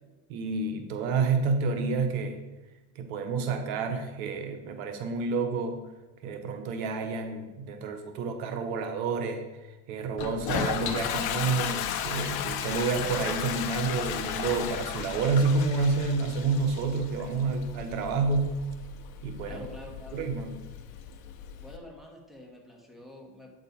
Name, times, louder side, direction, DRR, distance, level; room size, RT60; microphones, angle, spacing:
voice 1, 0.3-2.4 2.9-5.8 6.2-18.6 19.2-19.6 20.1-20.6, right 4 dB, 75° right, 6 dB, 1.2 m, -29 dB
Toilet flush, 10.2-21.8, left 9 dB, 55° left, 1.0 m, -35 dB
voice 2, 19.4-20.2 21.6-23.5, left 2 dB, ahead, -1 dB, 2.2 m, -47 dB
9.0 x 6.5 x 4.2 m, 1.2 s
supercardioid pair, 95°, 43 cm